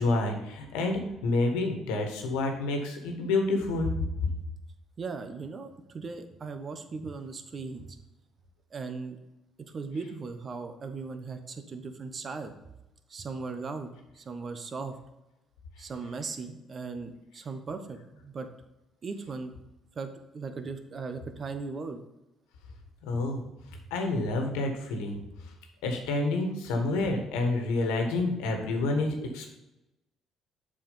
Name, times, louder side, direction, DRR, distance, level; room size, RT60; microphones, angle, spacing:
voice 1, 0.0-3.9 23.0-23.4 23.9-25.2 25.8-29.5, left 2 dB, 80° left, 3 dB, 1.5 m, -28 dB
voice 2, 5.0-8.0 8.7-9.2 9.6-12.5 13.1-14.9 15.8-18.5 19.0-19.5 19.9-22.0 23.1-23.2 23.7-23.8, right 4 dB, 45° right, 8 dB, 1.1 m, -38 dB
7.5 x 4.8 x 5.5 m, 0.95 s
hypercardioid pair, 55°, 0 cm